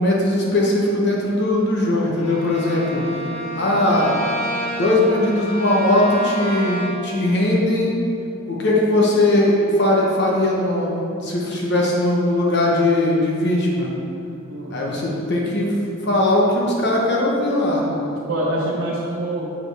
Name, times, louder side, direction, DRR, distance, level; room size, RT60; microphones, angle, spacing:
voice 1, 0.0-3.0 3.5-4.2 4.8-7.9 8.5-13.9 14.7-15.7 16.0-17.9 18.6-18.8, left 1 dB, 55° left, -3 dB, 1.0 m, -19 dB
Bowed string instrument, 2.2-7.2, equal, 30° left, 1.1 m, -29 dB
voice 2, 14.5-14.8 17.9-19.6, right 1 dB, 80° right, -6 dB, 0.9 m, -26 dB
6.9 x 6.6 x 3.4 m, 2.7 s
head